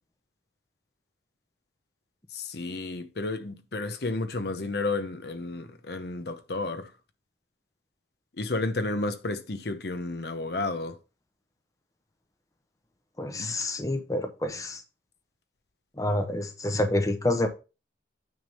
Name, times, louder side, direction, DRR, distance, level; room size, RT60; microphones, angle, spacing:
voice 1, 2.3-6.9 8.4-11.0 13.4-13.5, left 2 dB, 60° left, 0.8 m, -32 dB
voice 2, 13.2-14.8 16.0-17.5, left 1 dB, 20° left, 0.8 m, -28 dB
9.3 x 3.5 x 5.4 m
head